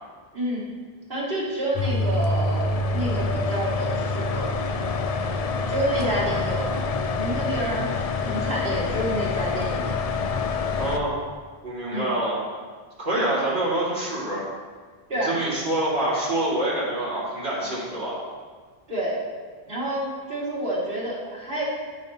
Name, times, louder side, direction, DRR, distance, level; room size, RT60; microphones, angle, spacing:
voice 1, 0.3-0.6 1.1-4.5 5.7-6.7 7.1-8.0 8.2-10.0 11.9-12.1 15.1-15.4 18.9-19.2 19.7-21.6, right 1 dB, 60° right, -7 dB, 2.3 m, -28 dB
sound 1, 1.7-11.0, left 3 dB, 55° left, 0.4 m, -26 dB
voice 2, 5.9-6.5 10.8-11.2 11.6-12.4 13.0-14.4 15.2-18.2, right 1 dB, 90° right, -7 dB, 2.5 m, -26 dB
12.0 x 5.4 x 2.9 m, 1.5 s
omnidirectional pair, 1.0 m